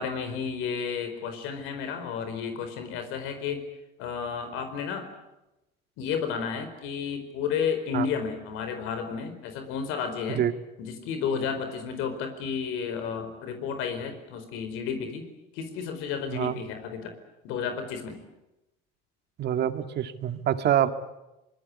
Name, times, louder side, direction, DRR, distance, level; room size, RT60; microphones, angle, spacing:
voice 1, 0.0-3.6 4.0-5.1 6.0-10.4 10.8-15.3 15.5-17.1 17.4-18.2, left 6 dB, 80° left, 8 dB, 4.6 m, -32 dB
voice 2, 19.4-20.9, right 11 dB, 55° right, 9 dB, 2.0 m, -26 dB
24.5 x 21.5 x 9.7 m, 0.96 s
cardioid pair, 110°, 21 cm